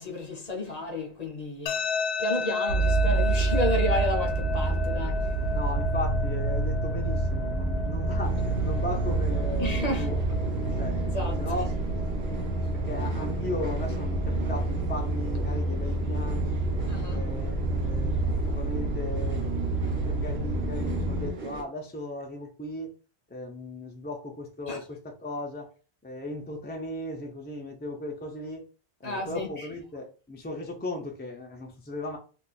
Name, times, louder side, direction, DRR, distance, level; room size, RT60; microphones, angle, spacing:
voice 1, 0.0-1.8 2.2-5.3 9.6-10.1 11.1-11.4 16.9-17.3 24.7-24.8 29.0-29.7, left 1 dB, 45° left, 0.7 m, -31 dB
sound 1, 1.7-14.6, left 4 dB, 85° left, 0.8 m, -35 dB
sound 2, 2.7-21.3, right 2 dB, 85° right, 0.9 m, -28 dB
voice 2, 5.5-10.2 10.8-11.0 11.4-11.9 12.9-16.6 17.1-19.5 19.8-22.9 23.3-25.7 26.0-28.6 29.0-32.2, left 1 dB, 15° left, 0.3 m, -36 dB
sound 3, 8.2-21.6, right 4 dB, 55° right, 0.8 m, -41 dB
2.4 x 2.3 x 4.0 m
omnidirectional pair, 1.0 m